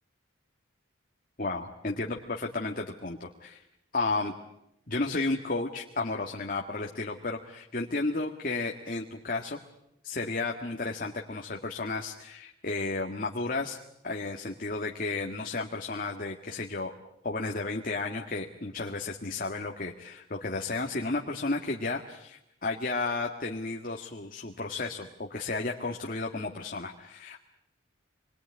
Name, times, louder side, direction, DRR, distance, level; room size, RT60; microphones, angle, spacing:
voice 1, 1.4-3.6 3.9-4.3 4.9-9.6 10.0-13.8 14.0-16.9 17.2-27.4, left 3 dB, 45° left, 1 dB, 1.8 m, -33 dB
27.5 x 22.0 x 9.8 m, 0.83 s
head